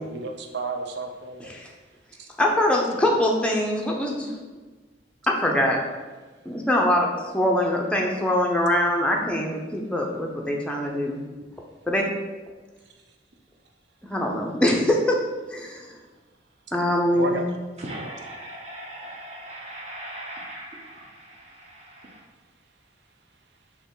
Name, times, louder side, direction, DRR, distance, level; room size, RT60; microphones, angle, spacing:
voice 1, 0.0-1.6 2.2-2.3 17.2-17.5 17.9-18.1, right 3 dB, 65° right, 4 dB, 0.5 m, -32 dB
voice 2, 2.4-4.3 5.3-5.8 6.4-7.1 7.3-11.2 11.9-12.1 14.1-15.2 15.5-15.9 16.7-17.4, left 1 dB, 5° left, 0 dB, 0.5 m, -23 dB
voice 3, 17.8-22.2, right 1 dB, 35° right, -2 dB, 0.8 m, -39 dB
4.3 x 2.9 x 3.8 m, 1.3 s
head